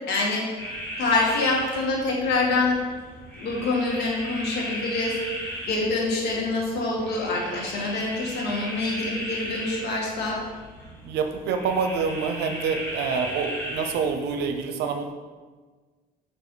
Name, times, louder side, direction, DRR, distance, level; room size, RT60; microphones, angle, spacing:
voice 1, 0.1-0.5 1.0-2.8 3.4-5.1 5.7-10.4, left 3 dB, 75° left, -2 dB, 1.8 m, -25 dB
sound 1, 0.6-14.5, equal, 15° left, 2.0 m, -36 dB
voice 2, 11.0-15.1, right 5 dB, 80° right, 7 dB, 0.7 m, -27 dB
5.6 x 5.1 x 3.9 m, 1.4 s
cardioid pair, 110°, 17 cm